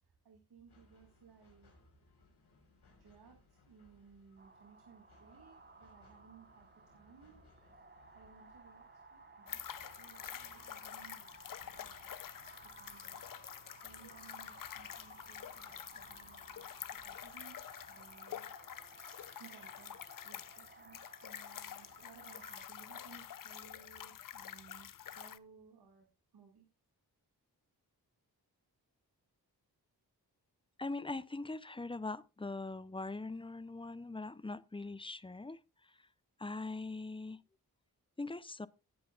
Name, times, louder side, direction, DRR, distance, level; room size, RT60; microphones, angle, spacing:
voice 1, 0.0-1.7 3.0-7.4 8.1-9.6 10.0-11.3 11.7-11.9 12.6-18.8 19.4-26.1 26.3-26.7, right 6 dB, 70° right, 2.1 m, -61 dB
sound 1, 0.7-18.2, left 3 dB, 85° left, 5.0 m, -67 dB
sound 2, 4.4-22.7, right 3 dB, 25° right, 1.3 m, -58 dB
sound 3, 9.5-25.4, left 9 dB, 55° left, 0.6 m, -48 dB
voice 2, 30.8-35.6 36.4-37.4 38.2-38.7, left 3 dB, 15° left, 0.6 m, -41 dB
17.0 x 8.7 x 2.4 m
cardioid pair, 55°, 39 cm